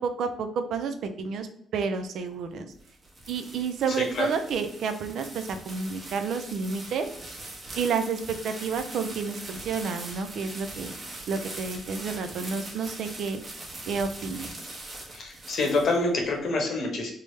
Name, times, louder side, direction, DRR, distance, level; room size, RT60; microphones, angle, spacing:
voice 1, 0.0-1.5 1.7-2.7 3.3-7.1 7.7-11.0 11.3-13.4 13.9-14.5, right 5 dB, 70° right, 8 dB, 0.4 m, -30 dB
sound 1, 2.5-16.3, right 2 dB, 35° right, 0.9 m, -42 dB
voice 2, 15.1-17.1, left 2 dB, 60° left, 1 dB, 0.9 m, -26 dB
3.3 x 2.1 x 3.1 m, 0.68 s
cardioid pair, 90°, 0 cm